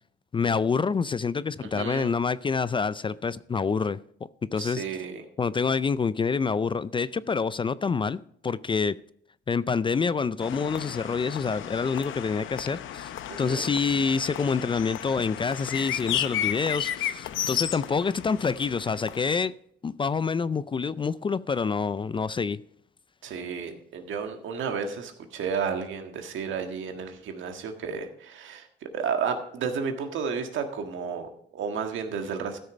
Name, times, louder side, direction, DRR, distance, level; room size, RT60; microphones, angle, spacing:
voice 1, 0.3-4.0 4.5-4.8 5.4-8.9 9.5-13.1 13.4-19.5 19.8-22.6, left 5 dB, 25° left, 0.3 m, -27 dB
voice 2, 1.6-2.1 4.6-5.3 13.3-13.6 23.2-28.7 28.9-32.6, right 6 dB, 75° right, 1.6 m, -32 dB
sound 1, 10.4-19.4, left 11 dB, 80° left, 0.7 m, -33 dB
13.0 x 6.6 x 5.1 m
cardioid pair, 90°, 20 cm